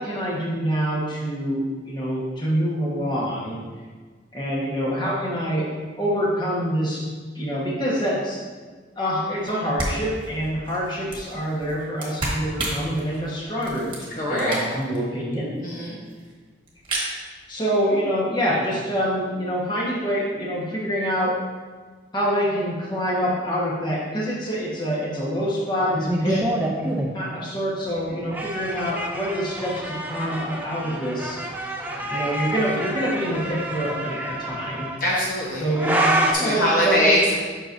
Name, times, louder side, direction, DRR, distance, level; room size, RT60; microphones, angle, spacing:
voice 1, 0.0-3.6 4.3-5.7 6.0-8.4 9.0-14.0 14.3-15.6 17.5-21.3 22.1-26.4 27.1-31.4 32.1-34.9 35.6-37.1, equal, 25° left, -5 dB, 1.4 m, -26 dB
sound 1, 9.4-9.5 9.8-15.0 15.3-15.4 15.6-15.7 15.9-16.3 16.7-17.1, right 1 dB, 30° right, 1.5 m, -31 dB
voice 2, 14.1-14.6 15.6-16.0 26.3-26.4 35.0-35.7 36.3-37.4, equal, 50° left, -5 dB, 1.0 m, -22 dB
sound 2, 25.9-27.1 28.0-36.3, right 1 dB, 10° right, 0.6 m, -27 dB
7.9 x 5.9 x 2.7 m, 1.5 s
head